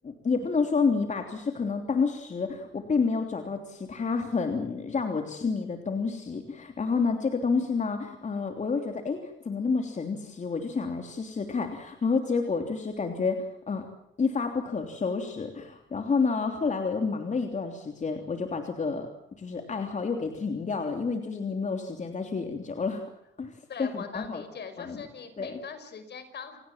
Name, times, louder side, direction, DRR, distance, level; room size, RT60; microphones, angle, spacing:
voice 1, 0.0-13.9 14.2-19.1 19.4-23.0 23.4-23.5 23.8-24.4 24.8-25.0 25.4-25.6, left 4 dB, 35° left, 5 dB, 3.2 m, -29 dB
voice 2, 23.7-26.6, left 6 dB, 60° left, 10 dB, 5.4 m, -41 dB
29.0 x 18.0 x 7.5 m, 0.83 s
cardioid pair, 90°, 20 cm